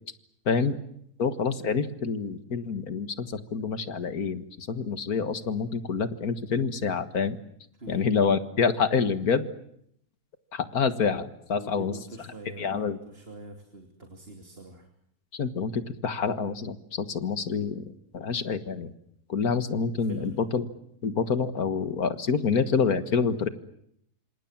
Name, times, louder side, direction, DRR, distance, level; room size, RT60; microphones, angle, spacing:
voice 1, 0.5-0.8 1.2-7.4 7.9-9.5 10.5-12.0 12.6-13.0 15.3-18.9 19.3-20.7 21.0-23.5, left 5 dB, 70° left, 12 dB, 2.1 m, -27 dB
voice 2, 11.6-14.9 20.1-20.3, right 2 dB, 35° right, 5 dB, 3.2 m, -44 dB
27.0 x 26.5 x 7.4 m, 0.72 s
omnidirectional pair, 1.7 m